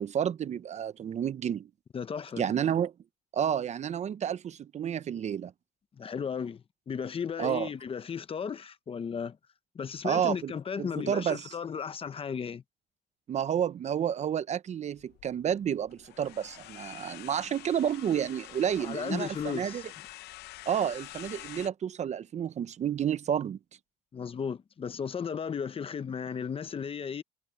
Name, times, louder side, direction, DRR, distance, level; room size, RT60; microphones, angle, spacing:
voice 1, 0.0-1.7 2.4-2.9 3.3-5.5 7.4-7.7 10.0-10.5 10.8-11.4 13.3-19.8 20.7-23.6, right 9 dB, 40° right, 0.7 m, -30 dB
voice 2, 1.9-2.4 6.0-9.4 9.7-12.6 18.8-19.8 24.1-27.2, left 6 dB, 35° left, 1.0 m, -35 dB
sound 1, 15.0-21.7, left 17 dB, 80° left, 0.6 m, -47 dB
cardioid pair, 110°, 17 cm